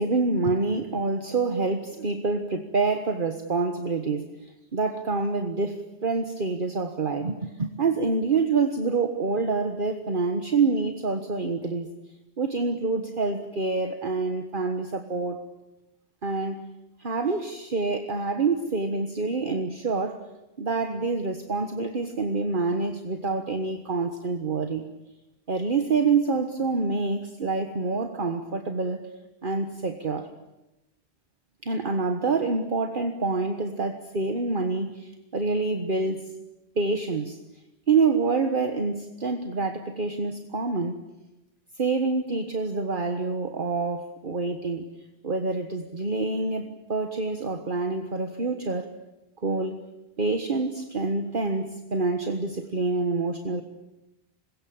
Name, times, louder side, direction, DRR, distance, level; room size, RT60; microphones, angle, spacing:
voice 1, 0.0-11.9 12.4-15.4 16.2-16.7 17.0-20.2 20.6-24.9 25.5-29.1 29.4-30.3 31.6-36.3 36.8-37.4 37.9-41.0 41.8-44.9 45.2-48.9 49.4-49.8 50.2-53.6, right 4 dB, 50° right, 7 dB, 1.6 m, -27 dB
26.5 x 22.5 x 8.8 m, 0.97 s
omnidirectional pair, 1.2 m